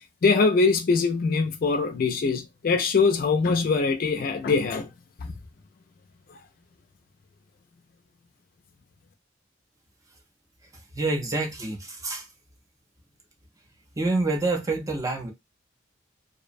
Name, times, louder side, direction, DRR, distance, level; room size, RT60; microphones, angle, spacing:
voice 1, 0.2-4.9 5.2-5.3, left 4 dB, 50° left, 0.4 m, -23 dB
voice 2, 10.9-12.2 14.0-15.3, right 2 dB, 20° right, 0.5 m, -27 dB
2.6 x 2.0 x 2.5 m
head